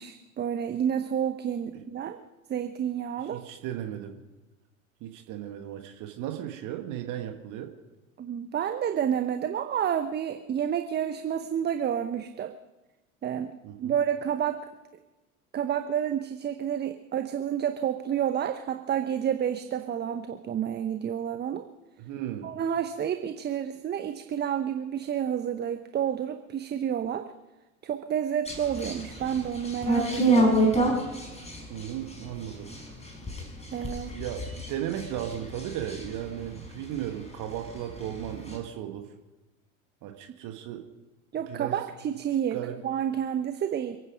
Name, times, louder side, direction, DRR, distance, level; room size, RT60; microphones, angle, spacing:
voice 1, 0.0-2.2 2.5-3.4 8.2-12.6 13.2-14.6 15.5-21.7 22.4-27.3 27.8-30.6 33.7-34.1 41.3-44.0, right 9 dB, 25° right, 9 dB, 0.9 m, -30 dB
voice 2, 3.2-4.1 5.0-7.7 13.6-14.0 22.0-22.5 31.7-32.7 34.1-39.1 40.0-40.9 41.5-41.8 42.5-42.8, right 11 dB, 45° right, 4 dB, 1.8 m, -36 dB
sound 1, 28.5-37.3 37.6-38.6, right 1 dB, 15° left, 5.1 m, -28 dB
28.0 x 9.7 x 5.2 m, 1.1 s
figure-of-eight pair, 75°, 43 cm